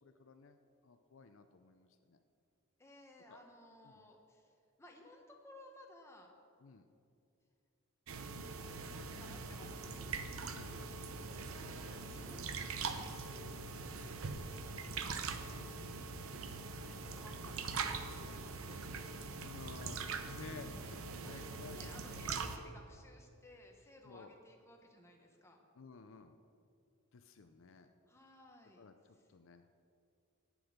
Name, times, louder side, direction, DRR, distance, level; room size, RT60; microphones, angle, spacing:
voice 1, 0.0-2.2 3.3-3.4 3.8-4.0 6.6-6.9 10.5-10.9 15.5-15.8 19.4-21.9 22.2-22.6 24.0-24.3 25.7-26.3 27.1-27.9 28.8-29.7, left 4 dB, 65° left, 8 dB, 0.5 m, -54 dB
voice 2, 2.8-6.3 8.9-10.1 11.2-15.4 16.8-18.9 21.4-25.6 28.1-28.9 29.1-29.2, left 1 dB, 15° left, 1 dB, 1.2 m, -59 dB
sound 1, 8.1-22.6, right 4 dB, 85° right, 0.8 m, -42 dB
18.0 x 6.3 x 5.1 m, 2.4 s
head